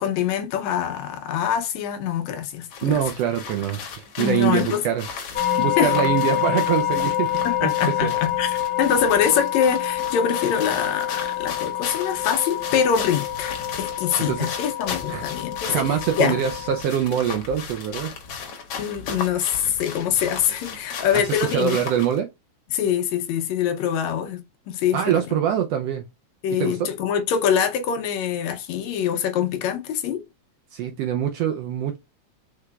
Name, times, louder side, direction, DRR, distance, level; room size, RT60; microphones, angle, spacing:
voice 1, 0.0-3.0 4.2-4.8 5.6-5.9 7.5-15.9 16.2-16.4 18.8-21.8 22.7-24.4 24.7-25.0 26.4-30.2, left 8 dB, 75° left, 1.9 m, -24 dB
sound 1, 2.7-22.2, left 6 dB, 60° left, 1.9 m, -36 dB
voice 2, 2.8-5.0 5.6-7.3 7.6-8.1 14.3-14.6 15.1-15.2 15.7-18.1 21.1-22.3 24.9-26.0 26.6-26.9 30.7-32.0, right 9 dB, 80° right, 1.5 m, -24 dB
sound 2, 5.3-16.8, left 12 dB, 25° left, 1.1 m, -27 dB
4.7 x 4.6 x 2.3 m
omnidirectional pair, 3.4 m